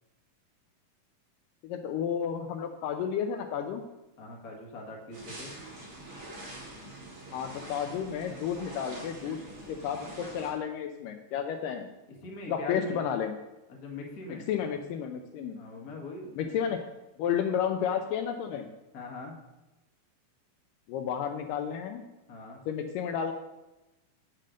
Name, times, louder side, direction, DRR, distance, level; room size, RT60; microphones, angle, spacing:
voice 1, 1.6-3.8 7.3-9.4 9.7-11.9 12.5-13.4 14.3-15.6 16.4-16.8 17.2-18.7 20.9-22.0 22.7-23.3, left 8 dB, 80° left, 6 dB, 2.1 m, -32 dB
voice 2, 4.2-5.5 12.2-13.0 13.7-14.5 15.5-16.5 18.9-19.3 22.3-22.6, left 3 dB, 55° left, -1 dB, 1.0 m, -41 dB
sound 1, 5.1-10.5, right 1 dB, 40° right, 3.4 m, -45 dB
7.6 x 7.6 x 5.0 m, 1.0 s
omnidirectional pair, 4.2 m